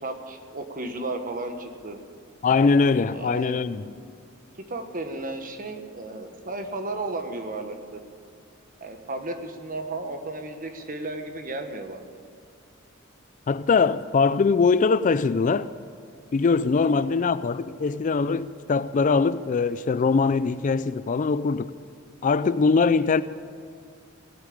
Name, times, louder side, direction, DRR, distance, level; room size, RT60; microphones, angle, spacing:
voice 1, 0.0-2.0 3.1-3.6 3.9-4.2 4.7-8.0 8.8-12.0 16.8-17.1, right 2 dB, 45° right, 1.3 m, -34 dB
voice 2, 2.4-3.9 13.5-15.7 16.3-21.7 22.2-23.2, left 4 dB, 40° left, 0.4 m, -22 dB
17.5 x 8.5 x 8.7 m
head